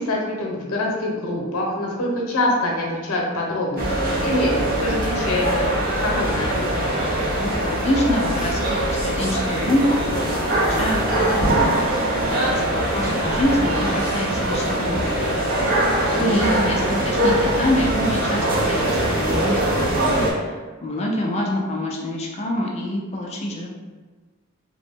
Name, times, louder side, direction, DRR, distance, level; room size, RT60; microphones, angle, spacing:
voice 1, 0.0-5.7 6.0-6.7 16.1-16.7, left 1 dB, 90° left, -2 dB, 0.7 m, -25 dB
sound 1, 3.8-20.3, right 1 dB, 45° right, 0.6 m, -22 dB
voice 2, 7.4-15.4 16.2-23.7, left 1 dB, 30° left, -1 dB, 0.3 m, -26 dB
2.9 x 2.0 x 3.5 m, 1.3 s
head